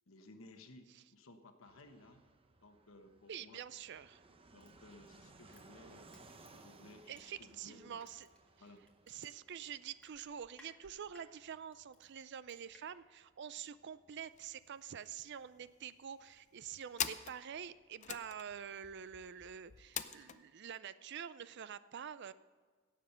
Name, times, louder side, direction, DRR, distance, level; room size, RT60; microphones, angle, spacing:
voice 1, 0.1-2.2 2.6-3.6 4.5-8.0 8.6-8.8, left 2 dB, 70° left, 7 dB, 1.2 m, -58 dB
Fixed-wing aircraft airplane, 1.6-20.0, right 3 dB, 25° right, 0.8 m, -64 dB
voice 2, 3.3-4.2 7.1-8.3 9.1-22.3, right 8 dB, 55° right, 16 dB, 0.4 m, -47 dB
Crushing, 4.6-7.6 8.0-12.8 13.2-13.3, left 2 dB, 5° left, 1.9 m, -65 dB
sound 1, 14.2-14.5 14.8-14.9 15.1-15.8 16.3-20.4, left 9 dB, 35° left, 0.5 m, -44 dB
17.0 x 7.5 x 5.7 m, 1.5 s
head